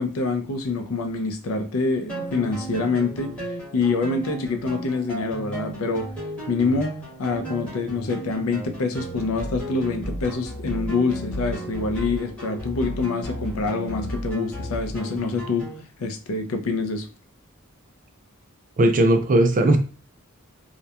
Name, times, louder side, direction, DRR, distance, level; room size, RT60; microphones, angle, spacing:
voice 1, 0.0-3.4 3.7-6.1 6.5-6.9 7.2-15.7 16.0-17.1, left 3 dB, 70° left, 0.4 m, -26 dB
sound 1, 2.1-15.8, equal, 5° left, 1.1 m, -34 dB
voice 2, 18.8-19.8, right 1 dB, 40° right, 0.4 m, -17 dB
2.7 x 2.1 x 2.3 m
head